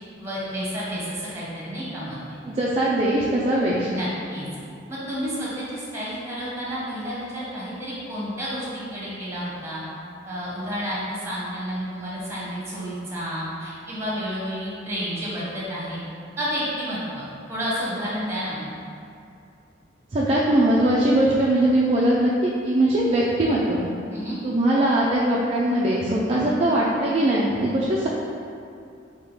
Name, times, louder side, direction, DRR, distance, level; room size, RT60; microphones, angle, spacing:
voice 1, 0.2-2.4 3.9-4.5 4.9-9.8 10.2-16.0 16.4-18.7 24.1-24.4, equal, 15° right, -8 dB, 1.2 m, -30 dB
voice 2, 2.5-3.9 20.1-23.8 24.4-28.1, right 1 dB, 35° right, -5 dB, 0.4 m, -21 dB
3.6 x 2.9 x 4.8 m, 2.5 s
head